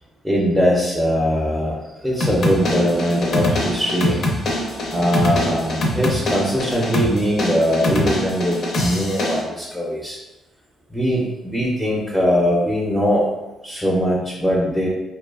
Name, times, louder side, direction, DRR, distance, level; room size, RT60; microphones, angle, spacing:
voice 1, 0.2-4.3 4.6-10.2 10.9-13.3 13.6-14.9, equal, ahead, -5 dB, 0.5 m, -21 dB
sound 1, 2.2-9.4, left 1 dB, 60° left, 0.5 m, -24 dB
2.4 x 2.3 x 2.4 m, 0.99 s
cardioid pair, 90°, 0 cm